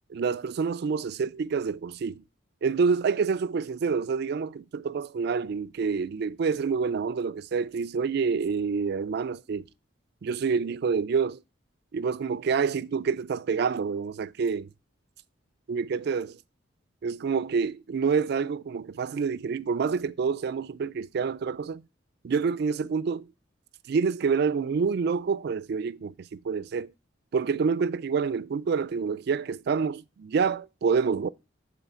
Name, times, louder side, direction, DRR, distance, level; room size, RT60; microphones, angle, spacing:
voice 1, 0.1-2.2 2.6-9.6 10.2-11.4 11.9-14.7 15.7-16.4 17.0-21.8 22.2-23.3 23.9-26.9 27.3-31.3, right 5 dB, 55° right, 0.3 m, -27 dB
8.1 x 4.1 x 4.2 m
head